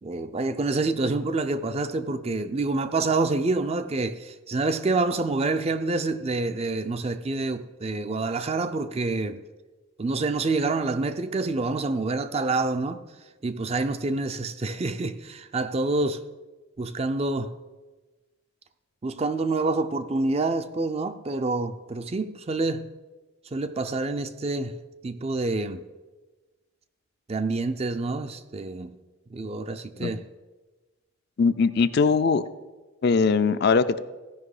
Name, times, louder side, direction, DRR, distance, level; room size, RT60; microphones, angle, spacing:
voice 1, 0.0-9.4 10.0-13.0 13.4-16.2 16.8-17.5 19.0-22.9 23.5-24.8 25.0-25.8 27.3-29.0 29.3-30.3, right 3 dB, 30° right, 0.4 m, -27 dB
voice 2, 31.4-32.4 33.0-34.0, left 5 dB, 50° left, 0.3 m, -21 dB
15.0 x 5.5 x 4.8 m
head